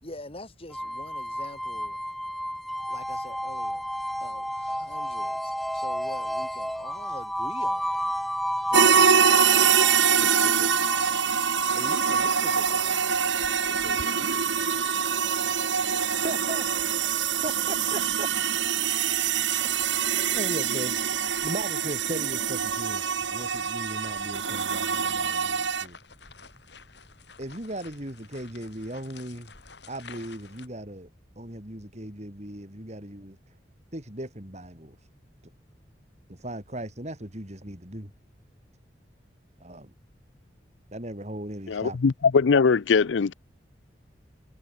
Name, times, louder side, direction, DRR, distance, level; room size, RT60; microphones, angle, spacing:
voice 1, 0.0-2.0 2.9-3.8 4.2-8.1 8.7-9.2 9.8-13.4 13.7-14.9, left 1 dB, 30° left, 4.4 m, -45 dB
sound 1, 0.7-15.6, equal, ahead, 1.1 m, -33 dB
sound 2, 8.7-25.8, right 7 dB, 85° right, 2.3 m, -24 dB
sound 3, 11.6-30.7, left 4 dB, 65° left, 6.2 m, -52 dB
voice 2, 16.2-16.7 17.4-18.3 19.6-19.7 20.3-21.0 21.4-23.0 23.3-26.0 27.4-29.5 29.9-31.1 31.4-33.4 33.9-35.1 36.3-38.1 39.6-39.9 40.9-42.0, right 1 dB, 40° right, 4.6 m, -37 dB
voice 3, 41.7-43.3, left 5 dB, 85° left, 0.5 m, -21 dB
head